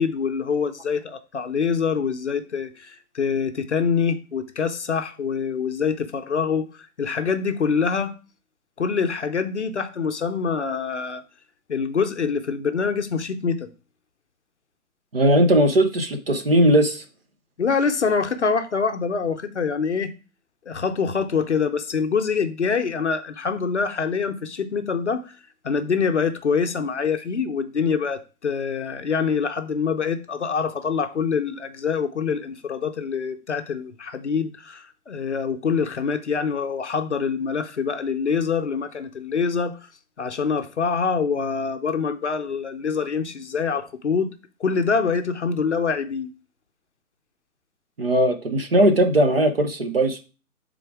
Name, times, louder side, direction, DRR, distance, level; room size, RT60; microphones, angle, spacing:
voice 1, 0.0-6.7 7.0-8.1 8.8-11.2 11.7-13.7 17.6-20.1 20.7-25.3 25.6-39.7 40.2-44.3 44.6-46.3, left 5 dB, 50° left, 0.6 m, -25 dB
voice 2, 15.1-17.0 48.0-50.2, right 1 dB, 40° right, 0.7 m, -18 dB
6.7 x 3.9 x 4.7 m
hypercardioid pair, 175°, 45 cm